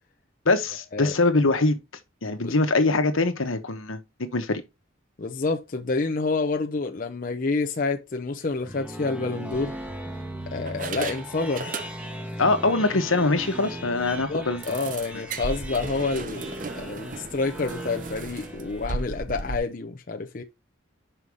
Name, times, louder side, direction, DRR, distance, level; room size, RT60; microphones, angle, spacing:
voice 1, 0.4-1.8 2.2-4.6 12.4-14.6, left 3 dB, 80° left, 1.2 m, -23 dB
voice 2, 5.2-9.7 10.5-11.8 12.3-12.4 12.9-13.0 14.3-20.4, left 3 dB, 40° left, 0.6 m, -28 dB
sound 1, 8.4-19.3, right 1 dB, 5° right, 1.0 m, -38 dB
sound 2, 8.6-8.8 9.5-10.2 10.7-12.3 12.6-12.8 13.2-13.3 13.6-13.7 14.6-19.6, right 3 dB, 40° right, 0.6 m, -36 dB
5.7 x 5.4 x 4.9 m
head